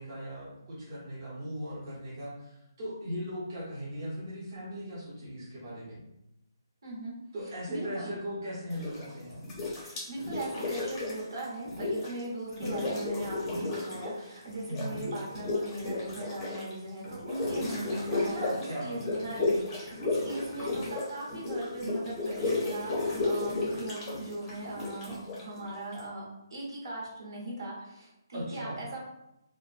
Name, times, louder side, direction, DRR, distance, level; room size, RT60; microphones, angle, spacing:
voice 1, 0.0-6.0 7.3-9.4 14.7-15.0 18.1-19.2 28.3-28.8, equal, 40° right, -8 dB, 0.8 m, -38 dB
voice 2, 6.8-7.1 7.7-8.2 9.8-29.0, right 1 dB, 75° right, -4 dB, 1.1 m, -39 dB
sound 1, 8.7-9.1 9.4-12.2 12.5-14.2 14.5-26.0, left 2 dB, 10° left, 0.6 m, -33 dB
2.5 x 2.2 x 2.4 m, 0.87 s
hypercardioid pair, 165°, 2 cm